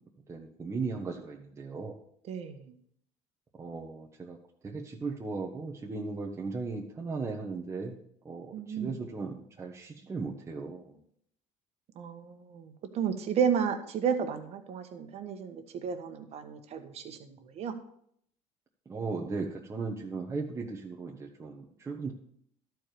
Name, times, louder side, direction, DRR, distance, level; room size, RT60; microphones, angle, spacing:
voice 1, 0.3-2.0 3.6-4.4 4.6-7.9 8.2-11.0 18.9-22.1, right 4 dB, 20° right, -1 dB, 1.0 m, -37 dB
voice 2, 2.3-2.7 8.5-8.9 12.0-17.7, right 7 dB, 50° right, 7 dB, 1.3 m, -33 dB
12.0 x 4.6 x 6.7 m, 0.68 s
cardioid pair, 125°, 13 cm